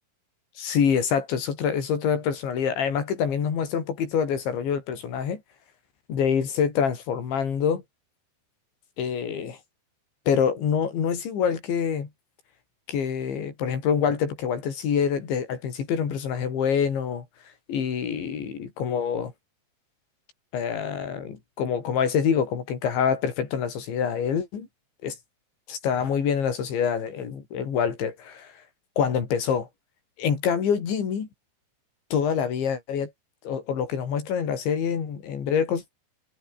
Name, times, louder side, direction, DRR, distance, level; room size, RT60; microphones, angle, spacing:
voice 1, 0.6-5.4 6.1-7.8 9.0-9.6 10.3-12.1 12.9-17.3 17.7-19.3 20.5-24.7 25.0-25.2 25.7-28.5 29.0-29.7 30.2-31.3 32.1-33.1 33.4-35.8, left 7 dB, 85° left, 6.6 m, -26 dB
omnidirectional pair, 5.1 m